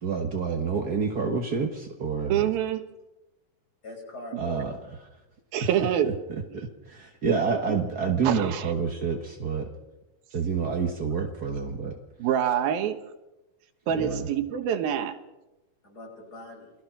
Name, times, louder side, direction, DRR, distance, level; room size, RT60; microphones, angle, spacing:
voice 1, 0.0-2.4 4.4-4.8 5.6-5.7 6.0-9.7 10.3-12.0 13.9-14.3, right 5 dB, 60° right, 3 dB, 1.0 m, -28 dB
voice 2, 2.3-2.8 5.5-6.1 7.5-7.8 8.2-8.7 12.2-13.0 13.9-15.2, right 9 dB, 80° right, 8 dB, 3.1 m, -26 dB
voice 3, 3.8-4.7 14.0-14.2 15.8-16.7, left 2 dB, 25° left, 1 dB, 5.9 m, -42 dB
28.5 x 20.5 x 6.0 m, 1.0 s
omnidirectional pair, 4.2 m